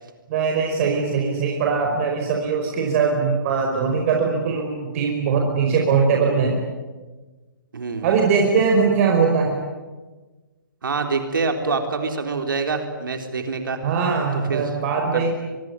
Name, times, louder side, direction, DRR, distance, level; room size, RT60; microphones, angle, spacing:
voice 1, 0.3-6.5 8.0-9.6 13.8-15.3, right 5 dB, 40° right, 1 dB, 5.1 m, -21 dB
voice 2, 7.7-8.2 10.8-13.8 14.3-14.7 15.1-15.3, right 4 dB, 75° right, 5 dB, 3.8 m, -26 dB
24.0 x 23.0 x 9.7 m, 1.3 s
hypercardioid pair, 135°, 11 cm